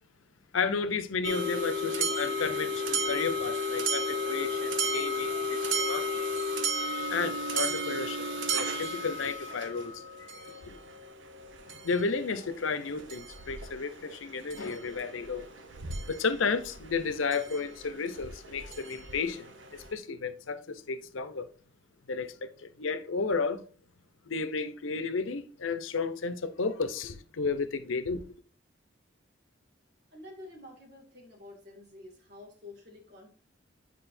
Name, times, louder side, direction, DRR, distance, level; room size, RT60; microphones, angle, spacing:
voice 1, 0.5-6.3 7.1-10.0 10.3-10.8 11.7-15.5 16.1-21.5 22.1-23.6 24.3-28.2, left 4 dB, 90° left, 0.7 m, -33 dB
sound 1, 1.2-19.9, equal, 75° right, 0.8 m, -34 dB
voice 2, 30.1-33.3, left 2 dB, 55° right, 2.2 m, -49 dB
8.9 x 5.1 x 2.6 m
head